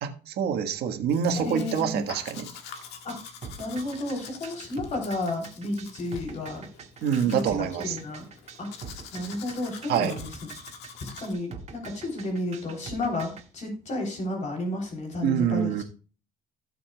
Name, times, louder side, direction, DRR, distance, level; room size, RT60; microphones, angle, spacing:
voice 1, 0.0-2.5 7.0-8.0 9.9-10.1 15.2-15.8, right 8 dB, 75° right, 5 dB, 1.5 m, -26 dB
Domestic sounds home sounds, 1.1-11.3, left 7 dB, 85° left, 1.8 m, -46 dB
voice 2, 1.3-2.0 3.0-3.1 3.6-6.7 7.2-8.2 8.6-8.7 9.1-10.3 11.0-15.7, left 2 dB, 45° left, 1 dB, 3.4 m, -32 dB
sound 1, 2.7-13.4, right 6 dB, 40° right, 1.8 m, -44 dB
16.0 x 7.0 x 2.3 m, 0.37 s
cardioid pair, 110°, 17 cm